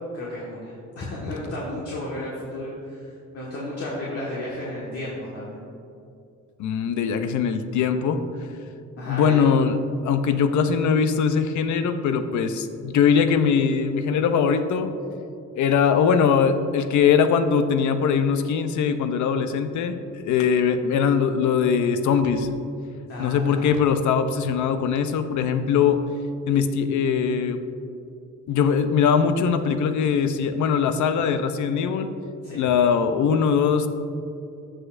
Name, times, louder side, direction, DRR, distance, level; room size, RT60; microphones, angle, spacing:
voice 1, 0.1-5.6 9.0-9.4 10.3-10.4 23.1-23.7 32.4-32.6, left 1 dB, 50° left, -6 dB, 1.6 m, -33 dB
voice 2, 6.6-8.2 9.0-9.8 10.0-14.9 15.5-22.5 23.2-26.0 26.5-27.6 28.5-32.1 32.5-33.9, left 6 dB, 75° left, 9 dB, 0.6 m, -21 dB
14.5 x 5.1 x 2.5 m, 2.5 s
cardioid pair, 90°, 30 cm